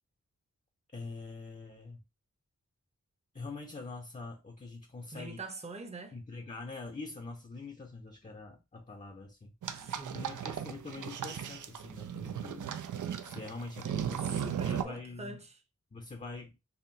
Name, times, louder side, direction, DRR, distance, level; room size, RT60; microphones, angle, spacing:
voice 1, 0.9-2.0 3.3-5.4 6.1-9.5 10.1-12.7 13.2-15.4 15.9-16.5, left 3 dB, 25° left, 0.6 m, -44 dB
voice 2, 5.1-6.2 9.7-10.5 13.9-15.6, right 3 dB, 20° right, 0.7 m, -44 dB
sound 1, 9.6-14.8, right 8 dB, 80° right, 0.5 m, -36 dB
5.6 x 2.2 x 2.6 m
wide cardioid pair, 70°, 30 cm